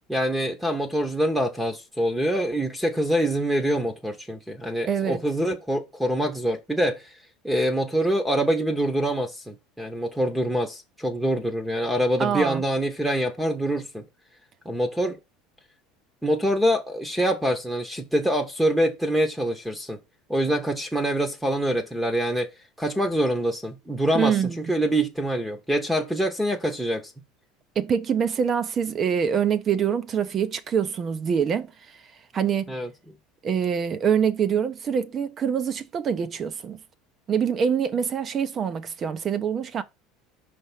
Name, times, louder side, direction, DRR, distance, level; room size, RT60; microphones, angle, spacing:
voice 1, 0.1-7.1 7.4-14.0 14.6-15.2 16.2-20.0 20.3-22.5 22.8-27.1 32.7-32.9, right 1 dB, 5° right, 1.0 m, -25 dB
voice 2, 4.8-5.2 12.2-12.6 24.1-24.7 27.8-31.7 32.3-32.7 33.4-36.8 37.3-39.8, right 7 dB, 35° right, 0.7 m, -25 dB
5.3 x 3.4 x 5.7 m
supercardioid pair, 110°, 0 cm